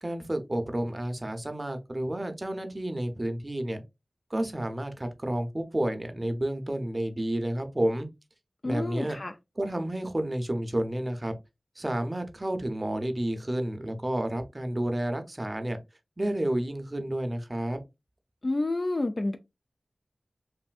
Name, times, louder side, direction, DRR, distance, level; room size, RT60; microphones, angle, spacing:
voice 1, 0.0-3.8 4.3-8.1 8.6-9.2 9.6-11.3 11.8-15.8 16.2-17.8, right 1 dB, 35° right, 0.6 m, -30 dB
voice 2, 8.6-9.3 18.4-19.4, left 2 dB, 45° left, 0.3 m, -29 dB
3.2 x 2.6 x 2.3 m
wide cardioid pair, 50°, 0 cm